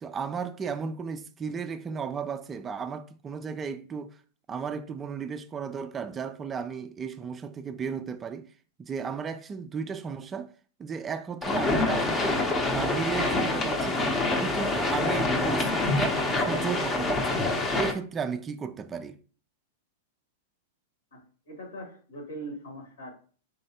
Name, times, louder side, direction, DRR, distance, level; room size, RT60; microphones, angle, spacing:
voice 1, 0.0-4.1 4.5-8.5 8.8-10.5 10.8-12.4 12.7-19.2, right 6 dB, 25° right, 0.3 m, -34 dB
sound 1, 11.4-17.9, left 2 dB, 20° left, 0.7 m, -26 dB
voice 2, 21.1-23.1, right 1 dB, 85° left, 2.0 m, -41 dB
4.0 x 3.1 x 2.8 m
hypercardioid pair, 115°, 0 cm